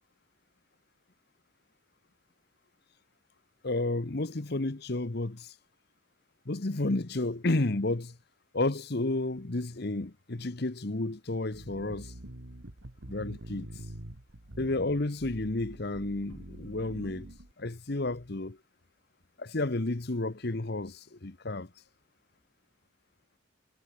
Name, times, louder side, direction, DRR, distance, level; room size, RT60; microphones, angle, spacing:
voice 1, 3.6-5.5 6.5-8.2 8.5-12.1 13.1-13.7 14.6-17.3 17.6-18.6 19.4-21.7, left 2 dB, 50° left, 1.1 m, -31 dB
sound 1, 11.5-17.5, right 1 dB, 80° right, 2.0 m, -46 dB
head